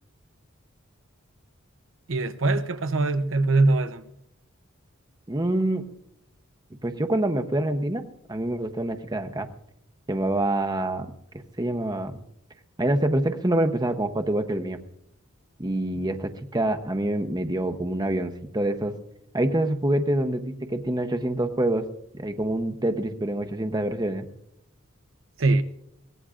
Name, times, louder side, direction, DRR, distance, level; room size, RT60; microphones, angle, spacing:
voice 1, 2.1-4.0 25.4-25.6, right 2 dB, 70° right, 0.8 m, -22 dB
voice 2, 5.3-5.8 6.8-8.0 8.3-9.5 10.1-11.1 11.6-12.2 12.8-14.8 15.6-18.9 19.3-21.8 22.1-24.2, right 1 dB, 20° right, 0.8 m, -26 dB
23.0 x 18.5 x 2.5 m
head